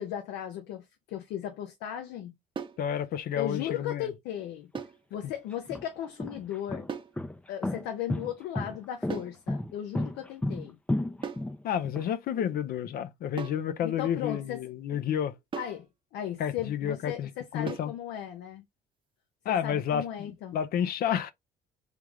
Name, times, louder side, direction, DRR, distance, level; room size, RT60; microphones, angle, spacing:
voice 1, 0.0-2.3 3.3-4.7 5.1-6.9 7.5-10.8 12.4-12.6 13.8-15.0 15.6-15.9 16.1-18.6 19.5-20.6, left 11 dB, 90° left, 0.9 m, -36 dB
sound 1, 2.6-2.9 4.8-5.1 6.9-7.2 9.1-9.4 11.2-11.5 13.4-13.7 15.5-15.9 17.7-18.0, right 6 dB, 30° right, 0.7 m, -38 dB
voice 2, 2.8-4.1 11.6-15.4 16.4-17.3 17.5-17.9 19.4-21.3, left 9 dB, 60° left, 0.6 m, -30 dB
sound 2, 4.7-4.8 5.5-12.0, left 1 dB, 10° left, 0.4 m, -32 dB
3.6 x 3.5 x 3.1 m
cardioid pair, 110°, 17 cm